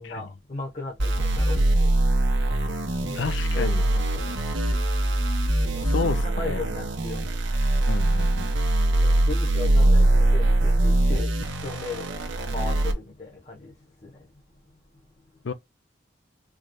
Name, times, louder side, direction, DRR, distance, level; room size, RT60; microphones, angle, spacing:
voice 1, 0.0-1.9 3.0-4.3 5.7-7.3 9.0-12.0 12.5-13.7 14.0-14.1, left 3 dB, 40° left, 1.0 m, -37 dB
sound 1, 1.0-12.9, right 1 dB, 80° right, 1.1 m, -22 dB
voice 2, 3.1-3.8 5.8-6.6 7.9-8.5 15.4-15.5, left 4 dB, 80° left, 0.5 m, -30 dB
4.7 x 3.2 x 2.2 m
head